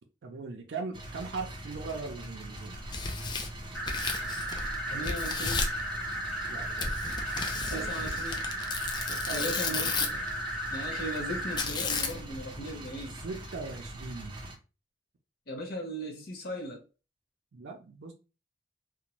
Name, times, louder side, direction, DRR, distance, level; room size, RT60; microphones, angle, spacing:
voice 1, 0.2-2.8 6.5-6.9 7.5-8.2 9.0-10.2 13.2-14.4 17.5-18.1, right 4 dB, 80° right, 0.4 m, -40 dB
sound 1, 0.9-14.6, right 1 dB, 30° right, 0.5 m, -43 dB
Tearing, 2.7-4.7 5.0-5.8 6.8-10.3 11.6-12.4, left 4 dB, 25° left, 0.3 m, -33 dB
sound 2, 3.7-11.6, right 1 dB, ahead, 0.8 m, -35 dB
voice 2, 4.9-5.7 7.7-8.5 9.3-10.2 10.7-13.2 15.5-16.8, equal, 60° left, 0.7 m, -38 dB
2.5 x 2.1 x 2.9 m
head